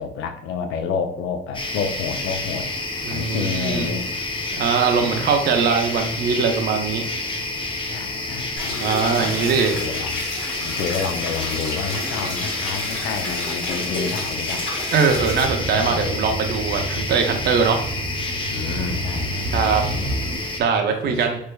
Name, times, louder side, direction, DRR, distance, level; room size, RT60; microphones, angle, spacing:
voice 1, 0.0-2.7 3.1-4.0 5.0-5.2 7.9-8.9 9.2-9.4 9.7-10.3 10.6-14.7 15.7-16.2 18.5-19.5 19.7-20.4 20.9-21.2, left 6 dB, 85° left, 6 dB, 0.5 m, -29 dB
sound 1, 1.5-20.6, left 2 dB, 25° left, 0.6 m, -29 dB
voice 2, 3.0-3.9 4.5-7.0 8.8-9.8 14.9-17.8 19.5-19.8 20.6-21.4, right 5 dB, 55° right, 3 dB, 0.5 m, -21 dB
sound 2, 8.6-15.4, left 2 dB, 65° left, 1.4 m, -31 dB
sound 3, 15.0-20.4, right 1 dB, 80° right, 1.2 m, -30 dB
3.2 x 3.1 x 2.2 m, 0.72 s
cardioid pair, 90°, 20 cm